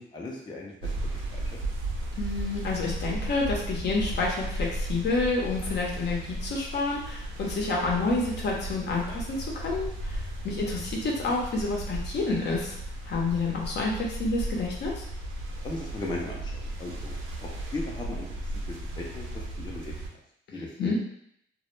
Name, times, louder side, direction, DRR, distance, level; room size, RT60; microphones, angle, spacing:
voice 1, 0.0-1.4 15.6-17.1 17.4-18.3 18.7-19.3 19.6-19.9 20.5-21.0, left 2 dB, 20° left, -2 dB, 0.5 m, -37 dB
sound 1, 0.8-20.1, right 1 dB, 90° right, 0.5 m, -35 dB
voice 2, 2.1-12.8 13.0-15.0 20.5-21.0, left 3 dB, 60° left, -2 dB, 0.7 m, -29 dB
2.1 x 2.0 x 3.0 m, 0.71 s
cardioid pair, 90°, 20 cm